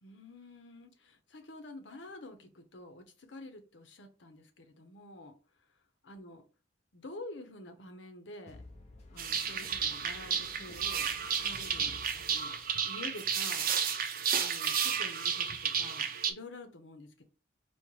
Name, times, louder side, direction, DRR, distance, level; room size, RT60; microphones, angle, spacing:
voice 1, 0.0-5.3 6.0-6.4 6.9-8.6 9.1-12.5 12.8-13.7 14.3-17.2, left 2 dB, 80° left, 0.9 m, -48 dB
sound 1, 8.5-12.9, left 2 dB, 40° left, 0.8 m, -52 dB
sound 2, 9.2-16.3, right 7 dB, 50° right, 0.6 m, -32 dB
4.4 x 2.2 x 4.6 m
head